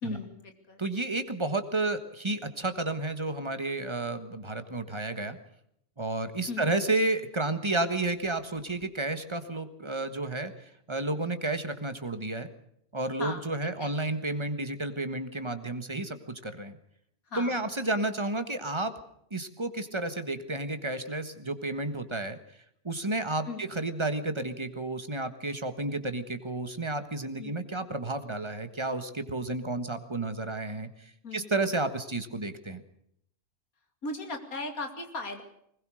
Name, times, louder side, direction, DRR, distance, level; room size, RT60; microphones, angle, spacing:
voice 1, 0.0-0.8 6.5-6.8 13.2-13.9 17.3-17.7 23.4-23.8 27.4-27.7 31.2-31.5 34.0-35.4, left 3 dB, 75° left, 6 dB, 3.0 m, -38 dB
voice 2, 0.8-5.4 6.0-12.5 12.9-16.7 17.4-18.9 19.3-22.4 22.8-30.9 31.3-32.8, right 2 dB, 20° right, 9 dB, 1.5 m, -31 dB
21.0 x 20.5 x 6.4 m, 0.72 s
omnidirectional pair, 1.5 m